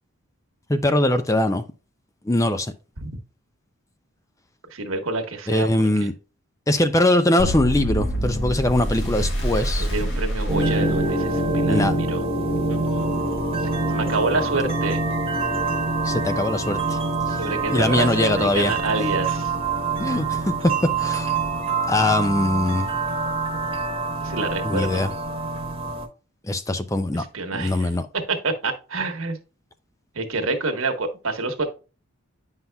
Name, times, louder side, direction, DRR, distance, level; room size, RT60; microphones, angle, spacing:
voice 1, 0.7-1.6 2.3-2.7 5.5-6.1 6.7-9.9 11.7-11.9 16.0-17.0 17.7-18.7 20.0-20.4 21.0-21.3 21.9-22.9 24.6-25.1 26.5-27.2 27.5-28.0, left 1 dB, 15° left, 0.4 m, -21 dB
voice 2, 4.7-5.7 6.0-6.1 9.8-12.2 12.7-13.1 13.9-15.0 17.3-19.5 24.2-25.0 27.1-29.4 30.1-31.7, right 3 dB, 70° right, 1.3 m, -27 dB
sound 1, 7.4-11.5, equal, 60° left, 2.4 m, -26 dB
Crystal Bowls and Gong short track, 10.5-26.1, right 3 dB, 25° right, 1.1 m, -25 dB
9.3 x 5.6 x 2.3 m
head